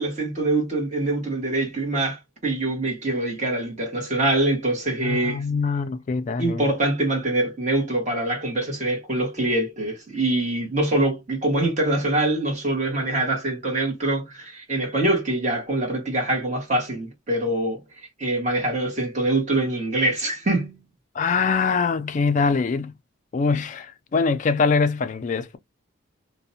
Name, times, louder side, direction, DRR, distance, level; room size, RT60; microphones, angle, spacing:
voice 1, 0.0-5.4 6.4-17.8 18.2-20.8, right 2 dB, 35° right, 1.0 m, -24 dB
voice 2, 5.0-6.6 21.1-22.9 23.3-25.6, left 4 dB, 40° left, 0.3 m, -23 dB
2.5 x 2.1 x 2.6 m
head